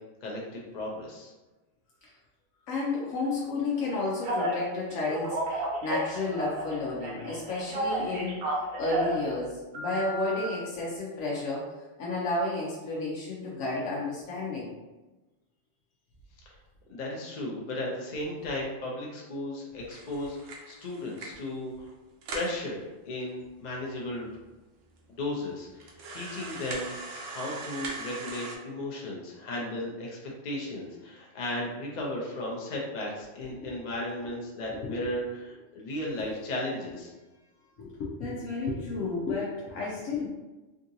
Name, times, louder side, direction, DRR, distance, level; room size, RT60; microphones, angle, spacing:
voice 1, 0.2-1.3 16.5-16.6 16.9-21.9 22.3-24.3 25.1-26.9 27.3-37.1, left 1 dB, 50° left, -2 dB, 0.6 m, -35 dB
voice 2, 2.7-8.4 8.8-11.6 12.0-14.7 33.6-33.7 34.7-34.9 37.8-40.3, left 2 dB, 90° left, -5 dB, 1.1 m, -32 dB
Telephone, 4.2-4.6 5.1-6.7 7.0-9.2 9.7-10.4, right 1 dB, 55° right, 0.8 m, -32 dB
sound 1, 19.9-21.5 21.9-22.0 22.2-22.6 23.3-23.4 23.6-23.7 24.4-24.5 25.0-25.1 25.8-28.6, right 3 dB, 75° right, 1.0 m, -40 dB
3.6 x 2.6 x 2.7 m, 1.1 s
omnidirectional pair, 1.4 m